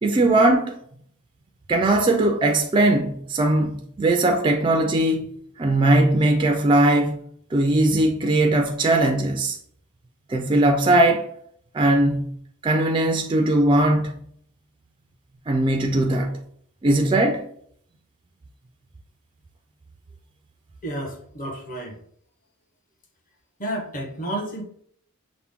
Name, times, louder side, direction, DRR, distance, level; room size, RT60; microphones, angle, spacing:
voice 1, 0.0-0.8 1.7-7.2 7.5-9.6 10.3-11.3 11.7-12.3 12.6-14.1 15.5-16.4 16.8-17.4, right 1 dB, 20° right, 0.3 m, -20 dB
voice 2, 20.8-22.0 23.6-24.6, right 1 dB, 35° left, 1.0 m, -31 dB
5.8 x 2.1 x 3.5 m
head